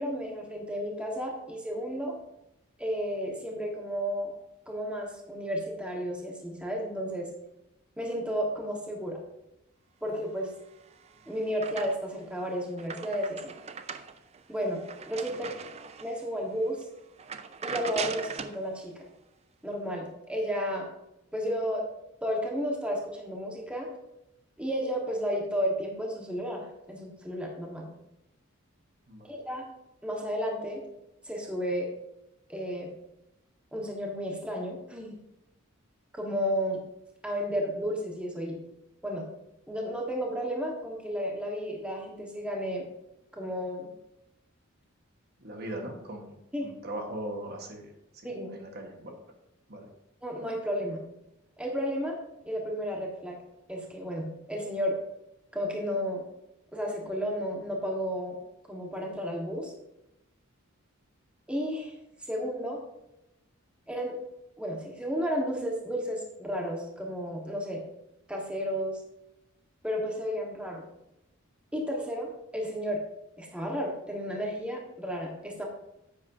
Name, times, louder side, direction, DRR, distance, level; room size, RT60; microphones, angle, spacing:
voice 1, 0.0-2.2 2.8-4.3 4.7-7.3 8.0-9.2 10.0-10.5 11.3-13.4 14.5-15.5 16.0-16.8 17.6-19.0 19.6-20.9 21.3-21.8 22.2-23.9 24.6-27.9 29.2-29.6 30.0-30.8 31.2-31.9 32.5-32.9 33.7-35.2 36.1-36.8 37.2-38.6 39.0-39.3 39.7-42.9 43.3-43.9 46.5-46.7 48.2-48.5 50.2-51.0 51.6-53.4 53.7-55.0 55.5-56.2 56.7-58.4 58.7-59.7 61.5-61.9 62.2-62.8 63.9-64.2 64.6-67.8 68.3-69.0 69.8-70.8 71.7-73.0 73.4-75.6, equal, 5° right, -1 dB, 1.4 m, -32 dB
sound 1, 10.7-12.2 12.6-16.2 16.7-16.8 17.2-18.6, right 6 dB, 30° right, 0.5 m, -40 dB
voice 2, 45.4-48.3 48.5-49.1 49.7-49.9, right 1 dB, 50° right, 3 dB, 1.4 m, -39 dB
10.5 x 8.4 x 2.7 m, 0.88 s
head